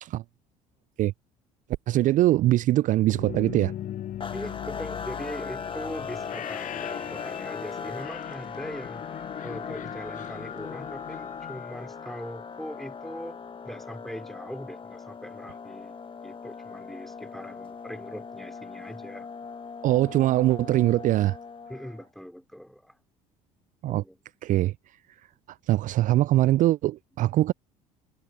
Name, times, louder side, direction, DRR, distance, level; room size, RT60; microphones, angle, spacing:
voice 1, 1.9-3.7 19.8-21.4 23.8-24.0 24.4-24.7 25.7-27.5, right 15 dB, 45° right, 0.4 m, -22 dB
sound 1, 2.9-12.8, left 11 dB, 45° left, 1.0 m, -39 dB
sound 2, 4.2-22.1, left 5 dB, 30° left, 1.4 m, -39 dB
voice 2, 4.3-9.0 9.4-19.4 21.7-23.0 23.9-24.2, equal, ahead, 3.4 m, -41 dB
hypercardioid pair, 60°, 18 cm